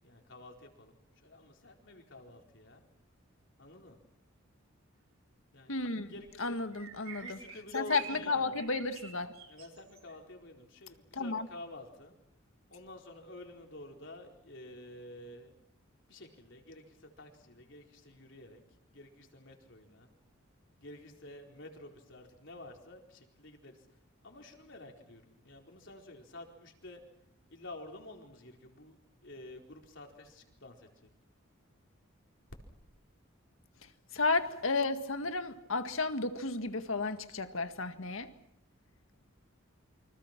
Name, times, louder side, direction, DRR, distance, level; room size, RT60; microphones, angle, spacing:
voice 1, 0.0-2.8 3.6-4.0 5.5-5.8 6.0-6.6 7.2-8.5 9.5-12.1 12.7-15.5 16.1-18.6 18.9-20.1 20.8-23.8 24.2-27.0 27.5-31.1, left 2 dB, 60° left, 4.5 m, -50 dB
voice 2, 5.7-6.1 6.4-7.4 7.7-9.4 11.1-11.5 34.1-38.3, left 3 dB, 75° left, 1.9 m, -33 dB
sound 1, 6.2-6.3 6.7-8.2 8.5-10.2, right 7 dB, 85° right, 4.1 m, -48 dB
29.0 x 25.5 x 6.0 m
head